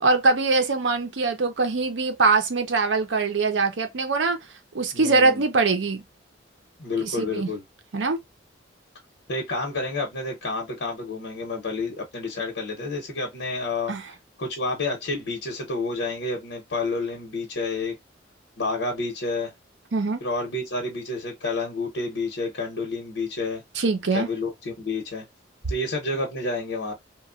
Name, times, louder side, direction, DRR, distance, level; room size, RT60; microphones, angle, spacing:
voice 1, 0.0-4.4 4.7-6.0 7.0-7.5 7.9-8.2 13.9-14.0 19.9-20.2 23.8-24.3, right 3 dB, 80° right, 0.7 m, -22 dB
voice 2, 4.9-5.4 6.8-7.6 9.3-17.9 18.6-19.5 20.2-23.6 24.1-25.2 25.7-26.9, left 3 dB, 85° left, 0.9 m, -29 dB
3.0 x 2.3 x 2.4 m
head